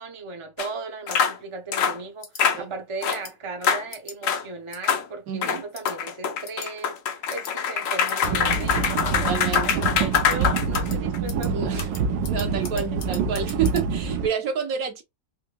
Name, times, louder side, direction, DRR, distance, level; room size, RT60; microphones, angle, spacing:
voice 1, 0.0-11.9 12.7-13.1, right 3 dB, 35° right, 0.5 m, -37 dB
sound 1, 0.6-0.7 1.1-1.4 1.7-2.0 2.4-2.6 3.0-3.2 3.6-3.8 4.2-4.4 4.8-5.0 5.4-11.2, left 7 dB, 60° left, 0.9 m, -24 dB
sound 2, 2.2-2.4 3.1-3.3 3.9-4.2 4.7-5.0 5.7-5.9 6.4-6.7 7.3-7.5 8.1-8.3 8.8-9.1 9.5-9.8 10.1-10.4 10.7-11.0 11.3-11.5 11.8-13.8, left 6 dB, 80° left, 1.7 m, -37 dB
voice 2, 5.3-5.6 9.1-9.9 11.5-11.9 12.3-15.0, right 7 dB, 65° right, 1.2 m, -29 dB
sound 3, 8.2-14.3, right 5 dB, 85° right, 1.3 m, -26 dB
4.5 x 2.7 x 2.3 m
omnidirectional pair, 1.9 m